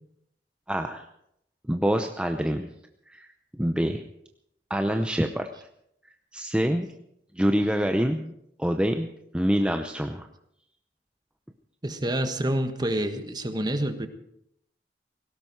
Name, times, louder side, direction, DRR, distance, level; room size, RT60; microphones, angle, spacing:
voice 1, 0.7-1.1 1.7-2.7 3.1-3.3 3.6-4.0 4.7-5.5 6.3-6.9 7.4-8.3 8.6-10.3, equal, 5° right, 5 dB, 0.7 m, -26 dB
voice 2, 11.8-14.1, right 1 dB, 25° right, 8 dB, 1.5 m, -27 dB
18.0 x 17.0 x 4.7 m, 0.75 s
head